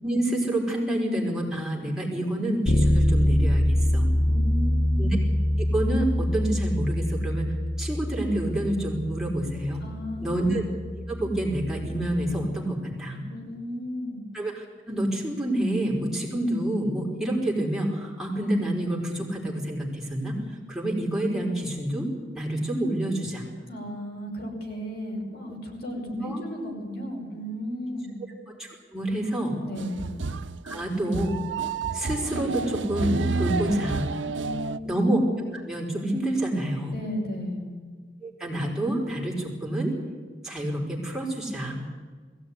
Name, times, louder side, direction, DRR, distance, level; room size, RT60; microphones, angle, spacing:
voice 1, 0.0-4.1 5.0-5.2 5.7-9.8 10.2-10.6 11.1-13.2 14.3-20.4 20.7-22.1 22.3-23.4 26.2-26.4 28.6-29.6 30.6-31.3 31.9-34.1 34.8-35.2 35.5-36.9 38.2-39.9 40.4-41.8, right 1 dB, 5° right, -3 dB, 4.9 m, -28 dB
Bass guitar, 2.7-12.5, left 1 dB, 75° left, 1.2 m, -25 dB
voice 2, 4.3-5.0 9.8-10.4 13.3-14.2 23.7-28.2 29.7-30.0 34.2-34.9 36.9-37.7, equal, 60° left, 1 dB, 5.6 m, -34 dB
sound 1, 29.8-34.8, right 4 dB, 90° right, 0.8 m, -30 dB
21.5 x 16.5 x 9.8 m, 1.5 s
head